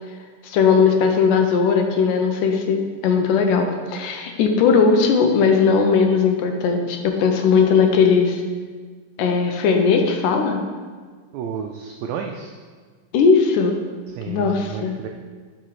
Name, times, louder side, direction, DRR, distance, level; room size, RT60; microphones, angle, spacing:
voice 1, 0.4-8.4 9.2-10.6 13.1-13.8 14.3-15.1, left 5 dB, 80° left, 4 dB, 2.3 m, -18 dB
voice 2, 11.3-12.5 14.2-15.1, right 7 dB, 85° right, 3 dB, 1.6 m, -31 dB
11.5 x 5.7 x 3.2 m, 1.5 s
omnidirectional pair, 3.8 m